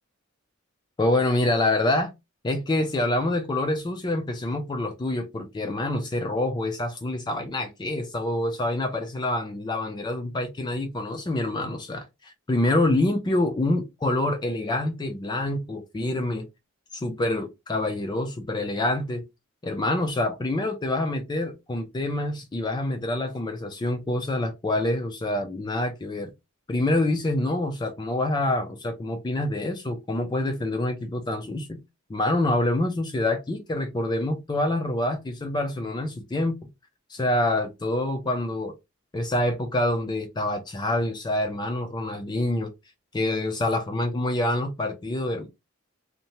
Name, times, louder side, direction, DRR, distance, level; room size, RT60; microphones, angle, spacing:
voice 1, 1.0-2.1 2.4-16.5 16.9-19.2 19.6-26.3 26.7-31.8 32.1-36.7 37.1-38.7 39.1-42.7 43.1-45.5, left 1 dB, 20° left, 0.4 m, -26 dB
2.7 x 2.1 x 2.9 m
head